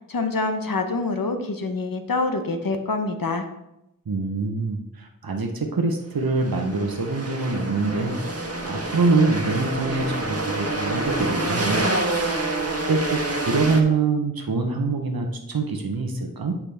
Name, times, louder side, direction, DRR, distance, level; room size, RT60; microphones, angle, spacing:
voice 1, 0.1-3.5, left 3 dB, 75° left, 6 dB, 0.9 m, -26 dB
voice 2, 4.1-8.2 8.7-11.8 12.3-12.5 12.9-16.5, right 3 dB, 90° right, 3 dB, 0.8 m, -24 dB
sound 1, 6.3-13.8, right 2 dB, 45° right, 1.3 m, -27 dB
8.8 x 5.9 x 3.4 m, 0.88 s
wide cardioid pair, 40°, 35 cm